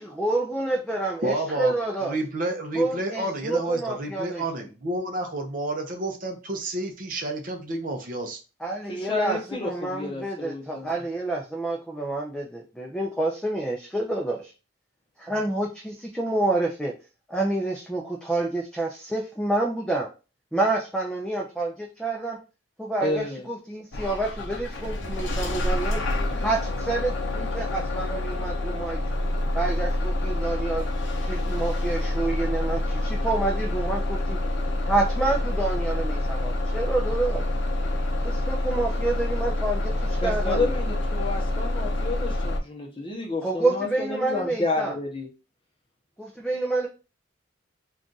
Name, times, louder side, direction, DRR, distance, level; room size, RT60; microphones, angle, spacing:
voice 1, 0.0-2.2 2.8-4.4 8.6-14.5 15.2-16.9 17.3-20.1 20.5-22.4 22.8-29.0 29.5-30.9 31.2-34.4 34.8-37.4 38.2-40.7 43.4-44.9 46.2-46.9, right 2 dB, 5° left, -1 dB, 0.3 m, -28 dB
voice 2, 1.2-8.4, right 1 dB, 45° right, 3 dB, 0.5 m, -30 dB
voice 3, 8.9-10.9 23.0-23.5 40.2-45.3, left 3 dB, 25° left, 0 dB, 0.7 m, -30 dB
Bus / Engine starting, 23.9-42.6, left 1 dB, 65° left, 0.5 m, -27 dB
2.5 x 2.3 x 3.8 m, 0.32 s
head